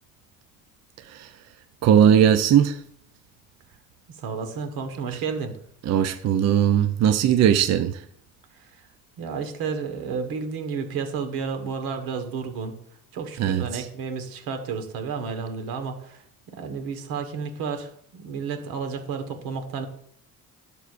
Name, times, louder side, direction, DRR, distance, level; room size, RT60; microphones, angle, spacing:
voice 1, 1.8-2.8 5.8-8.0 13.4-13.9, right 9 dB, 50° right, 0.5 m, -19 dB
voice 2, 4.1-5.5 8.5-8.8 9.2-12.8 13.1-16.2 16.5-19.9, right 5 dB, 80° right, 1.4 m, -31 dB
11.0 x 6.8 x 2.5 m
cardioid pair, 95°, 35 cm